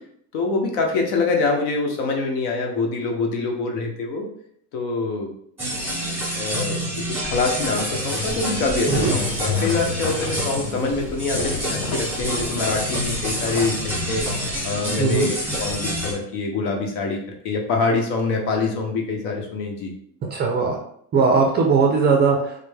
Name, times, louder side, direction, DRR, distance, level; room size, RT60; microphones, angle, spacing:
voice 1, 0.3-4.3 4.7-5.3 6.4-14.3 14.6-19.9, left 3 dB, 70° left, 2 dB, 0.9 m, -25 dB
sound 1, 5.6-16.1, equal, 5° right, 1.1 m, -27 dB
sound 2, 8.1-14.1, left 2 dB, 35° left, 0.8 m, -35 dB
voice 2, 15.0-15.3 20.3-20.8 21.1-22.6, right 5 dB, 25° right, 0 dB, 0.3 m, -19 dB
3.2 x 2.1 x 3.2 m, 0.67 s
supercardioid pair, 120°, 44 cm